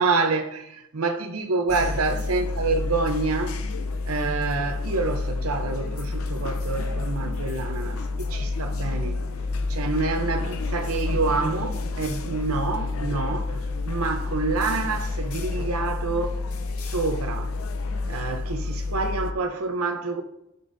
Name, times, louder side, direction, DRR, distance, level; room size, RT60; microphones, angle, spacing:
voice 1, 0.0-3.6 4.1-9.2 9.7-13.6 13.9-16.4 16.8-17.5 18.1-20.2, right 3 dB, 85° right, 0.8 m, -27 dB
sound 1, 1.7-19.3, left 3 dB, 75° left, 0.7 m, -29 dB
13.5 x 6.8 x 2.7 m
head